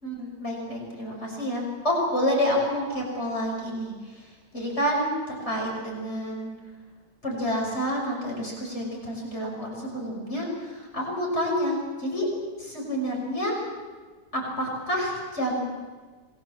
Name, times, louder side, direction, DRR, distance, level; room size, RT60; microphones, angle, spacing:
voice 1, 0.0-6.5 7.2-12.3 12.6-13.5 14.3-15.7, equal, 40° left, -2 dB, 6.4 m, -29 dB
27.5 x 21.5 x 7.4 m, 1.4 s
omnidirectional pair, 1.8 m